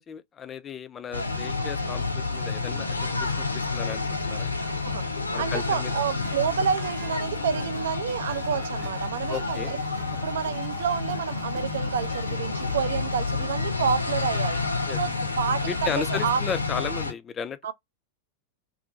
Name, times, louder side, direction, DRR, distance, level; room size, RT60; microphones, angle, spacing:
voice 1, 0.0-4.5 5.3-5.9 9.3-9.7 14.9-15.0 15.7-17.7, left 7 dB, 25° left, 0.3 m, -35 dB
sound 1, 1.1-17.1, left 4 dB, 80° left, 0.5 m, -29 dB
voice 2, 4.6-9.8 10.2-14.6 14.9-16.4 17.6-17.7, right 8 dB, 60° right, 0.3 m, -29 dB
sound 2, 6.2-14.8, right 8 dB, 35° right, 0.7 m, -49 dB
2.6 x 2.4 x 3.6 m
figure-of-eight pair, 90°, 0 cm